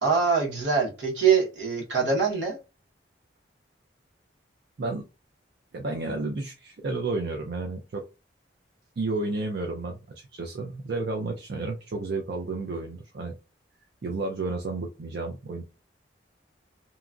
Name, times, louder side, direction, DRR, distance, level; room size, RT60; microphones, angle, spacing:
voice 1, 0.0-2.6, right 5 dB, 80° right, 1.2 m, -23 dB
voice 2, 5.7-8.0 9.0-13.3 14.0-15.6, right 3 dB, 60° right, 0.4 m, -31 dB
2.9 x 2.3 x 2.4 m
head